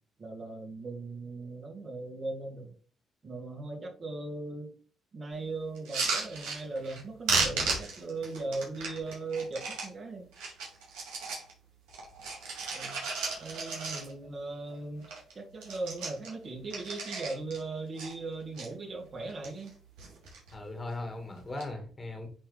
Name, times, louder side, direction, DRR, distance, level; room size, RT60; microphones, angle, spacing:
voice 1, 0.2-2.7 3.2-4.7 5.1-10.3 12.7-13.0 13.4-15.1 15.3-19.7, right 3 dB, 45° right, 2.3 m, -38 dB
sound 1, 5.8-7.0 7.3-9.9 10.3-11.5 11.9-14.3 14.7-14.8 15.0-15.3 15.6-17.6 18.0-18.7 19.2-19.7 20.0-20.5 21.4-21.7, right 4 dB, 85° right, 2.4 m, -34 dB
voice 2, 20.5-22.3, left 2 dB, 30° left, 1.9 m, -38 dB
9.8 x 3.4 x 3.4 m
supercardioid pair, 60°, 0 cm